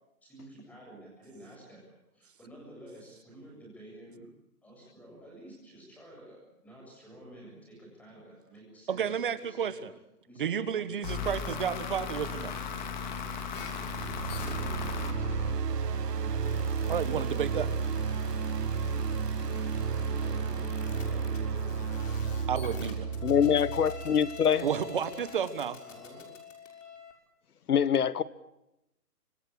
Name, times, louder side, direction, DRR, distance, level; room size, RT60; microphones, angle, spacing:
voice 1, 0.2-4.3 4.6-9.8 10.2-11.3 11.6-12.2 14.3-16.9 17.1-17.3 20.1-23.5 25.8-26.3, right 1 dB, 5° left, -2 dB, 7.4 m, -51 dB
voice 2, 8.9-9.9 10.4-12.6 16.9-17.7 22.5-23.1 24.6-25.8, right 8 dB, 35° right, 13 dB, 1.5 m, -31 dB
sound 1, 11.0-16.0, left 5 dB, 30° left, 2.5 m, -37 dB
sound 2, 13.5-27.1, left 5 dB, 50° left, 6.4 m, -46 dB
sound 3, 13.8-24.8, right 5 dB, 85° right, 1.3 m, -32 dB
voice 3, 23.2-24.7 27.7-28.2, left 8 dB, 70° left, 17 dB, 1.5 m, -24 dB
26.0 x 24.0 x 8.5 m, 0.90 s
hypercardioid pair, 175°, 47 cm